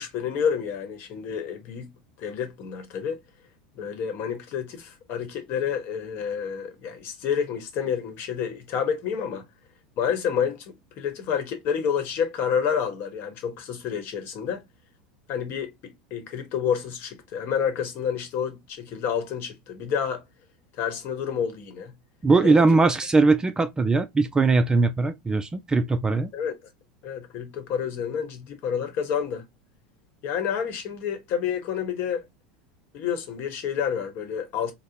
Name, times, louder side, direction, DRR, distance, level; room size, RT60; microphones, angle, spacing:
voice 1, 0.0-1.9 2.2-3.2 3.7-9.4 10.0-14.6 15.3-20.2 20.8-21.9 22.4-22.6 26.3-26.6 27.0-29.4 30.2-32.2 32.9-34.7, left 7 dB, 50° left, 1.0 m, -29 dB
voice 2, 22.2-26.3, right 3 dB, 15° right, 0.4 m, -20 dB
3.6 x 2.1 x 2.7 m
hypercardioid pair, 100°, 5 cm